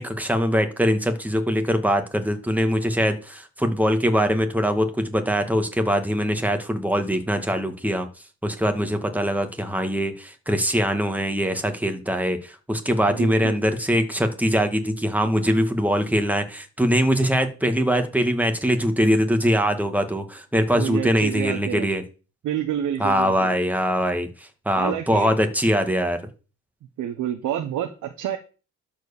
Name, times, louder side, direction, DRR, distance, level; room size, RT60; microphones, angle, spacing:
voice 1, 0.0-8.1 8.4-22.0 23.0-26.2, equal, 5° right, 7 dB, 2.0 m, -22 dB
voice 2, 13.1-13.6 20.7-21.9 22.4-23.5 24.7-25.3 27.0-28.4, right 10 dB, 80° right, 6 dB, 1.2 m, -28 dB
12.0 x 4.8 x 7.2 m, 0.35 s
cardioid pair, 90°, 30 cm